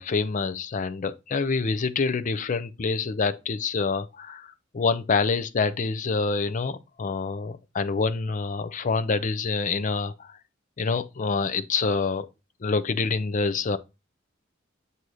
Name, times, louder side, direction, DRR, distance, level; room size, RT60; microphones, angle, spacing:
voice 1, 0.0-4.5 4.7-10.3 10.8-12.2 12.6-13.8, left 4 dB, 40° left, 0.5 m, -26 dB
7.7 x 2.8 x 4.8 m
head